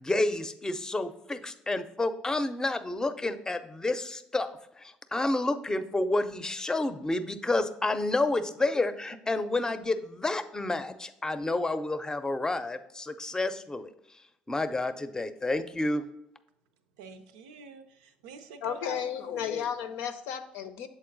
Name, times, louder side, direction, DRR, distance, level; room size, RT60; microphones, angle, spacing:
voice 1, 0.0-4.5 4.8-13.9 14.5-16.0, left 2 dB, 15° left, 11 dB, 0.6 m, -30 dB
voice 2, 17.0-19.6, right 5 dB, 85° right, 9 dB, 0.5 m, -47 dB
voice 3, 18.6-20.9, left 8 dB, 75° left, 9 dB, 0.6 m, -33 dB
7.0 x 4.2 x 3.9 m, 0.82 s
hypercardioid pair, 65°, 4 cm